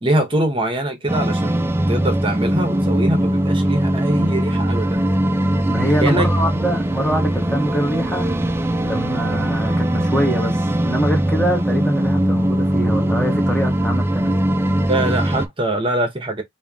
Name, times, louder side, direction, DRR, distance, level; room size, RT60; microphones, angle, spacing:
voice 1, 0.0-5.0 6.0-6.3 14.9-16.4, right 1 dB, 30° right, 1.0 m, -23 dB
sound 1, 1.1-15.5, right 1 dB, 15° right, 0.3 m, -20 dB
voice 2, 5.7-8.3 8.8-14.4, equal, 5° left, 1.0 m, -24 dB
3.4 x 2.7 x 3.5 m
head